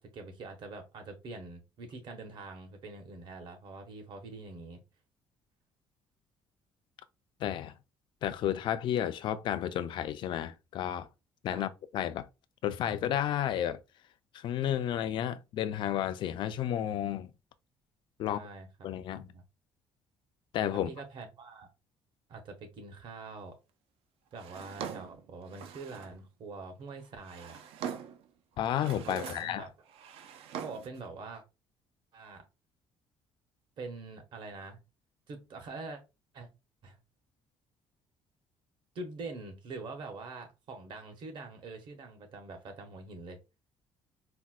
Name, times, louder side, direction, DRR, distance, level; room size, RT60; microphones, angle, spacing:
voice 1, 0.0-4.8 11.5-11.6 18.2-19.4 20.7-21.7 22.3-23.5 24.3-27.6 29.0-29.7 30.6-31.4 32.1-32.4 33.8-34.8 35.3-36.0 36.3-36.5 36.8-37.0 38.9-43.4, right 3 dB, 55° right, 0.9 m, -44 dB
voice 2, 7.4-7.7 8.2-11.1 11.4-12.3 12.6-13.8 14.3-17.3 18.2-18.4 18.8-19.3 20.5-20.9 28.6-29.6, left 11 dB, 55° left, 0.3 m, -32 dB
Drawer open or close, 24.4-26.2 27.0-28.3 28.7-29.6 29.9-31.0, right 8 dB, 75° right, 0.4 m, -43 dB
4.1 x 2.1 x 2.4 m
cardioid pair, 140°, 10 cm